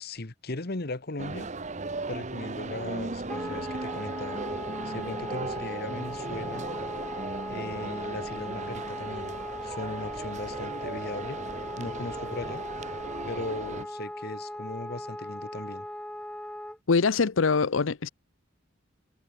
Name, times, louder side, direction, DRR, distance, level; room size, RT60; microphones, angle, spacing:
voice 1, 0.0-1.5 2.1-4.4 4.8-6.6 7.5-11.4 11.8-12.6 13.3-15.9, left 2 dB, 55° left, 1.4 m, -38 dB
sound 1, 1.2-13.9, right 3 dB, 35° right, 1.1 m, -37 dB
Wind instrument woodwind instrument, 3.3-16.8, left 1 dB, 5° left, 0.7 m, -39 dB
voice 2, 16.9-18.1, left 4 dB, 90° left, 0.7 m, -23 dB
head